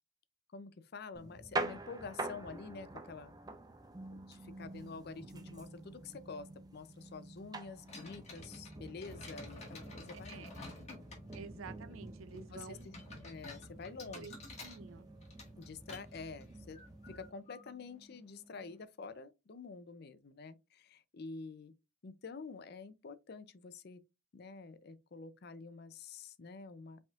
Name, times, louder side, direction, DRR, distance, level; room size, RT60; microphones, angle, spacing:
voice 1, 0.5-3.4 4.1-6.5 6.7-10.5 12.3-14.2 15.6-16.8 17.1-21.7 22.0-24.0 24.3-27.0, left 4 dB, 50° left, 0.5 m, -48 dB
sound 1, 1.1-17.3, right 2 dB, 20° right, 0.4 m, -46 dB
sound 2, 7.9-18.8, left 3 dB, 30° left, 1.7 m, -53 dB
voice 2, 11.3-12.9 14.1-15.1, right 4 dB, 80° right, 0.5 m, -50 dB
5.2 x 3.5 x 2.4 m
head